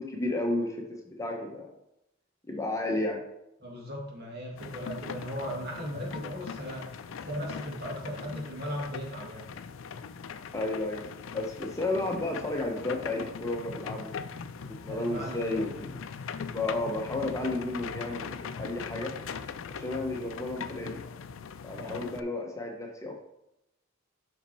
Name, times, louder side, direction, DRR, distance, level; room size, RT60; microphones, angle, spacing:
voice 1, 0.0-1.7 2.5-3.2 10.5-11.1 11.3-14.1 14.6-16.0 16.5-19.1 19.7-21.0 21.6-23.2, left 2 dB, 15° left, 1 dB, 0.9 m, -32 dB
voice 2, 3.6-6.9 7.2-9.4 14.9-15.5 21.8-22.0, equal, 55° right, -2 dB, 2.1 m, -37 dB
sound 1, 4.6-22.2, left 6 dB, 75° left, 0.4 m, -40 dB
5.7 x 5.5 x 4.3 m, 0.84 s
head